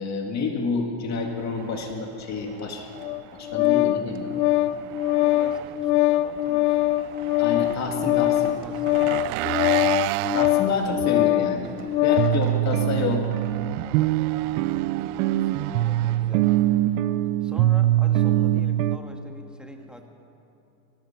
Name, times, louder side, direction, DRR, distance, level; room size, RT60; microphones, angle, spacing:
voice 1, 0.0-2.9 3.3-4.5 7.4-8.6 10.3-13.3, left 4 dB, 35° left, 2 dB, 2.1 m, -29 dB
Engine, 1.2-17.0, right 19 dB, 50° right, 0.5 m, -35 dB
Organ, 3.0-12.4, left 15 dB, 70° left, 0.8 m, -22 dB
voice 2, 5.2-6.9 7.8-7.9 8.3-9.8 10.6-10.7 12.3-12.7 13.8-16.5 17.4-20.1, equal, ahead, 2 dB, 1.8 m, -46 dB
sound 1, 10.4-10.5 11.0-11.1 11.5-11.6 12.2-19.0, right 14 dB, 65° right, 0.9 m, -23 dB
24.0 x 19.0 x 5.8 m, 2.9 s
supercardioid pair, 125°, 48 cm